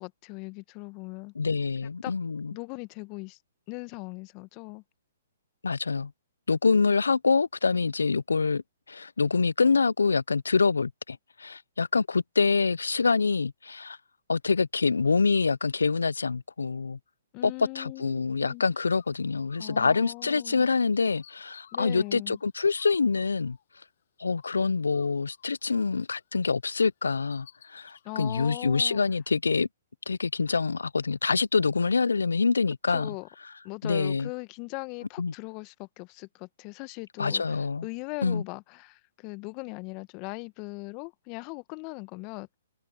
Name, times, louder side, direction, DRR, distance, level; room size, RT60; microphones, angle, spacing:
voice 1, 0.0-1.3 2.0-2.1 2.5-3.4 3.7-4.8 17.3-18.6 19.6-20.7 21.7-22.4 28.0-29.0 32.9-33.3 33.6-37.6 37.8-42.6, left 30 dB, 35° left, 1.4 m, -39 dB
voice 2, 1.3-2.5 5.6-6.1 6.5-8.6 8.9-14.0 14.3-17.0 17.4-23.6 24.2-29.7 30.1-33.1 33.8-34.3 35.2-35.3 37.2-37.9 38.2-38.4, left 4 dB, 80° left, 0.8 m, -26 dB
Bird, 18.7-20.3 20.6-24.0 24.4-26.5 26.8-28.9, left 10 dB, 55° left, 7.9 m, -57 dB
figure-of-eight pair, 125°, 0 cm